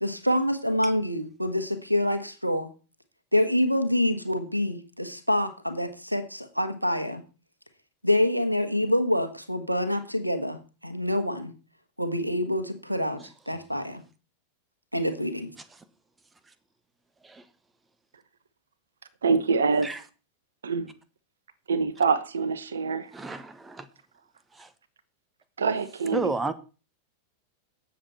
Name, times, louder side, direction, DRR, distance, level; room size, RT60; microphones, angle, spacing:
voice 1, 0.0-2.7 3.3-7.2 8.0-11.5 12.0-14.0 14.9-15.5, left 1 dB, 90° right, 1.5 m, -26 dB
voice 2, 19.2-19.9 20.6-20.9 21.7-23.1 25.6-26.3, right 5 dB, 70° right, 1.2 m, -25 dB
voice 3, 23.1-23.9 24.5-24.7 26.1-26.5, right 3 dB, 15° right, 1.0 m, -32 dB
18.0 x 7.6 x 4.4 m
figure-of-eight pair, 90°, 0 cm